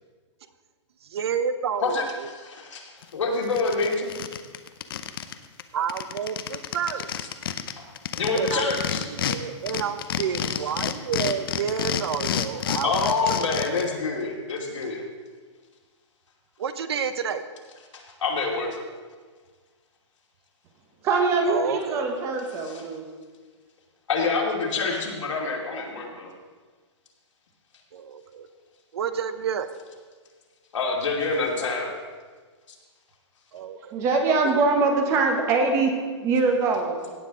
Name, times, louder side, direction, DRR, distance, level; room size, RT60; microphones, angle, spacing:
voice 1, 1.0-2.3 5.7-7.1 8.3-8.7 9.0-13.4 16.6-17.4 21.4-22.1 27.9-28.5 28.9-29.7 33.5-34.0, right 7 dB, 60° right, 12 dB, 0.8 m, -30 dB
voice 2, 2.4-4.1 7.8-7.9 8.1-9.0 12.8-15.0 17.9-18.8 22.6-22.8 24.1-26.3 30.7-31.9, left 4 dB, 85° left, -1 dB, 2.7 m, -27 dB
sound 1, 3.0-3.1 3.4-5.3 5.6-5.7 5.9-9.4 9.7-13.9, left 9 dB, 50° left, 0.7 m, -29 dB
voice 3, 21.0-23.0 33.9-37.1, right 3 dB, 20° right, 4 dB, 1.0 m, -23 dB
16.5 x 7.7 x 3.8 m, 1.5 s
hypercardioid pair, 165°, 15 cm